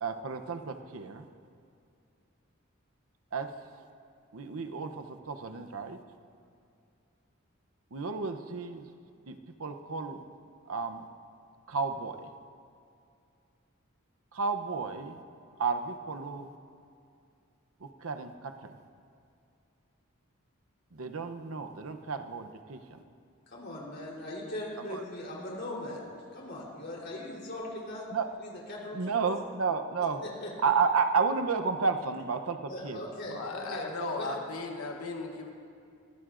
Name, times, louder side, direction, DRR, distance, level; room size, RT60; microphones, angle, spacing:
voice 1, 0.0-1.3 3.3-3.9 4.3-6.0 7.9-8.9 9.3-10.2 10.7-11.1 11.7-12.3 14.3-15.2 15.6-16.6 17.8-18.7 20.9-23.0 24.8-25.0 28.1-28.3 28.9-30.2 30.6-33.1, right 5 dB, 80° right, 7 dB, 0.7 m, -32 dB
voice 2, 23.5-26.0 26.3-28.0 28.4-29.0 30.4-30.5 32.7-34.3, left 1 dB, 55° left, -3 dB, 3.6 m, -39 dB
voice 3, 33.3-35.5, left 3 dB, 90° left, 3 dB, 1.1 m, -36 dB
22.5 x 15.5 x 2.5 m, 2.4 s
head